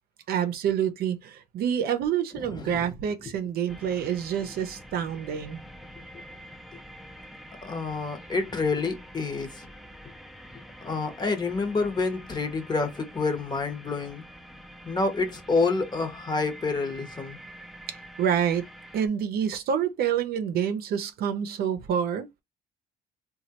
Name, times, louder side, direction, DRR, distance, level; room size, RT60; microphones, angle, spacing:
voice 1, 0.3-5.6 18.2-18.6 18.9-22.3, right 8 dB, 65° right, 0.6 m, -27 dB
voice 2, 2.3-2.9 7.6-9.7 10.8-14.2 14.9-17.4, left 3 dB, 25° left, 0.9 m, -28 dB
sound 1, 3.7-19.1, equal, ahead, 0.5 m, -46 dB
3.0 x 2.3 x 2.8 m
cardioid pair, 110°, 17 cm